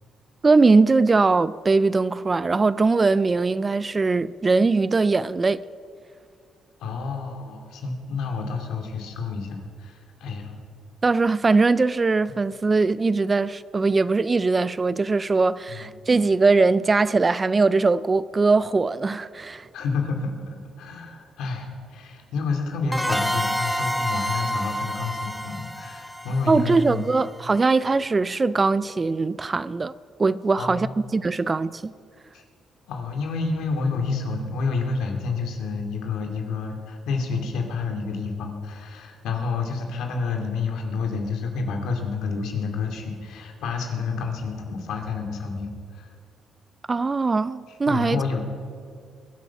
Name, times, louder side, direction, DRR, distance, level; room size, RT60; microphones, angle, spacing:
voice 1, 0.4-5.6 11.0-19.7 26.5-29.9 30.2-30.9 31.1-31.9 46.9-48.2, right 3 dB, 30° right, 0.3 m, -21 dB
voice 2, 6.8-10.5 15.7-15.9 19.7-27.1 30.6-31.0 31.3-31.4 32.3-32.4 32.9-46.1 47.7-48.4, left 4 dB, 85° left, 2.3 m, -29 dB
sound 1, 22.9-27.4, equal, ahead, 1.0 m, -28 dB
22.5 x 8.4 x 5.9 m
cardioid pair, 90°, 0 cm